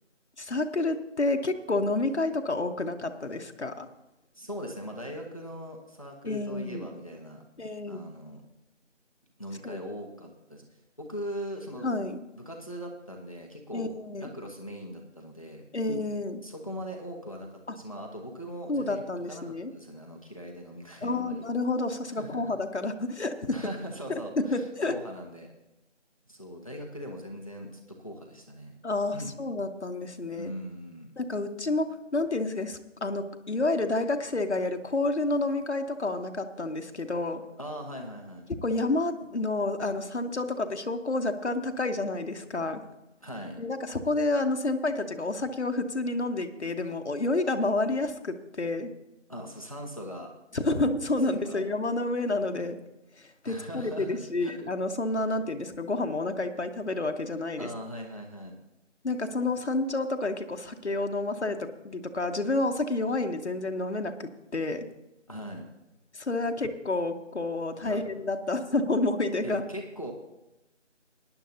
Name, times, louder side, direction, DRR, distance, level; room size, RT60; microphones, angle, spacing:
voice 1, 0.4-3.9 6.2-6.9 7.6-8.0 9.6-9.8 11.8-12.2 13.7-14.3 15.7-16.4 18.7-19.7 21.0-23.4 24.4-24.9 28.8-30.5 31.2-37.4 38.5-42.8 43.6-48.9 50.5-52.8 53.4-57.7 59.0-64.9 66.1-69.6, left 2 dB, 65° left, 6 dB, 1.1 m, -29 dB
voice 2, 4.3-7.4 7.9-8.4 9.4-10.7 11.0-11.9 12.3-13.9 14.2-15.7 16.4-19.0 19.3-21.4 22.2-22.5 23.5-25.5 26.3-28.7 29.1-29.3 30.3-31.1 37.6-38.5 43.2-43.6 49.3-50.3 51.3-51.6 53.5-54.5 57.6-58.5 65.3-65.7 67.8-68.0 69.4-70.1, equal, 30° left, 2 dB, 1.0 m, -40 dB
18.5 x 10.5 x 2.8 m, 0.94 s
figure-of-eight pair, 175°, 37 cm